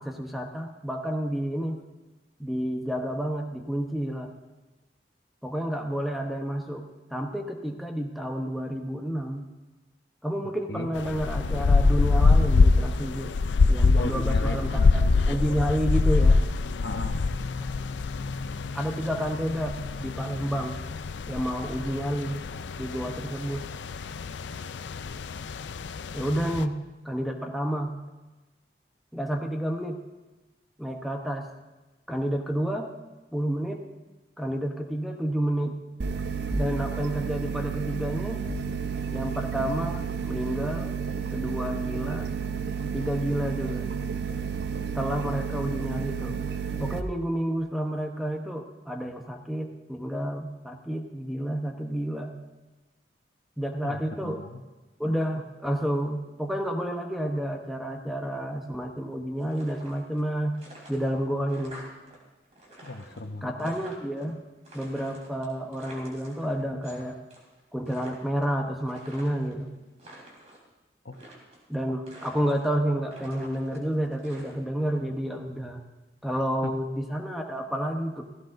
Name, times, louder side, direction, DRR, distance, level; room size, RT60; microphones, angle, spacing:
voice 1, 0.0-1.8 2.4-4.3 5.4-6.8 7.1-9.5 10.2-13.3 13.7-16.4 18.7-20.8 21.3-22.4 22.8-23.6 26.1-26.8 27.0-27.9 29.1-30.0 30.8-31.5 32.1-32.9 33.3-33.9 34.4-35.8 36.5-38.4 39.1-41.0 41.3-42.3 42.8-43.9 44.9-46.4 46.8-52.3 53.6-54.4 55.0-60.6 60.9-61.8 63.4-64.4 64.7-67.2 67.7-69.7 71.7-75.8 76.2-78.2, equal, ahead, 3 dB, 0.9 m, -30 dB
sound 1, 11.0-26.6, left 3 dB, 90° left, 0.5 m, -25 dB
voice 2, 13.9-14.9 16.8-17.5 53.8-54.6 62.8-63.7 71.0-71.2 76.3-76.7, left 2 dB, 75° left, 6 dB, 0.9 m, -37 dB
sound 2, 36.0-47.0, right 6 dB, 80° right, 0.7 m, -31 dB
sound 3, 59.4-60.3 60.5-62.2 62.4-64.2 64.6-67.0 67.3-67.6 67.8-69.5 69.9-70.6 71.1-71.7 72.1-72.8 73.1-74.9, right 1 dB, 40° right, 2.9 m, -48 dB
16.0 x 15.5 x 2.6 m, 1.1 s
head